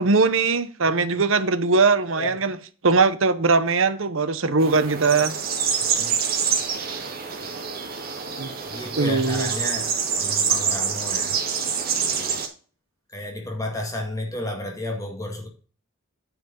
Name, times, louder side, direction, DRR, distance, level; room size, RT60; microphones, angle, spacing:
voice 1, 0.0-2.6 2.8-5.3 8.4-8.5 9.0-9.5, right 4 dB, 70° right, 1.0 m, -20 dB
voice 2, 0.8-1.3 2.2-2.4 5.8-6.2 8.7-11.4 11.9-12.4 13.1-15.5, left 1 dB, 15° left, 1.9 m, -33 dB
sound 1, 4.6-12.5, right 7 dB, 45° right, 2.0 m, -26 dB
9.5 x 5.1 x 5.3 m
head